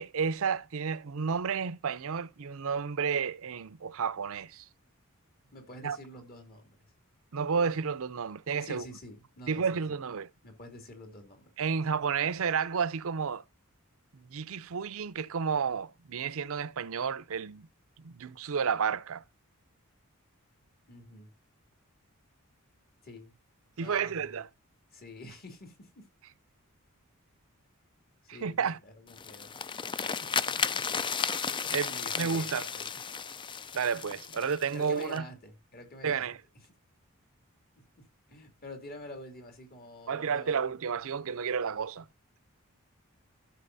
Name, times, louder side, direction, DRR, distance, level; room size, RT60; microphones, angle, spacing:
voice 1, 0.0-4.7 5.8-6.0 7.3-8.8 9.5-10.3 11.6-13.4 14.1-17.7 18.0-19.2 23.8-24.5 28.3-28.8 31.7-32.7 33.7-35.3 36.0-36.4 40.1-42.1, right 6 dB, 70° right, 0.6 m, -31 dB
voice 2, 5.5-6.9 8.6-10.0 10.4-11.5 20.9-21.3 23.0-23.3 23.8-24.4 24.9-26.1 28.2-29.6 30.0-31.0 31.9-32.9 34.4-36.3 37.8-40.7, left 1 dB, 45° left, 2.8 m, -48 dB
sound 1, 29.1-35.2, left 6 dB, 20° left, 0.4 m, -34 dB
14.0 x 6.2 x 2.7 m
head